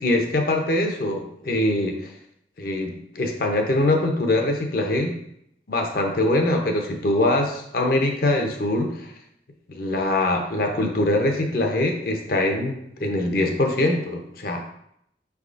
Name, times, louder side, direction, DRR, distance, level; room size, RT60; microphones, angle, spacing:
voice 1, 0.0-2.1 2.6-5.1 5.7-9.1 9.7-14.6, left 1 dB, 55° left, 3 dB, 0.6 m, -23 dB
5.3 x 3.5 x 2.5 m, 0.74 s
head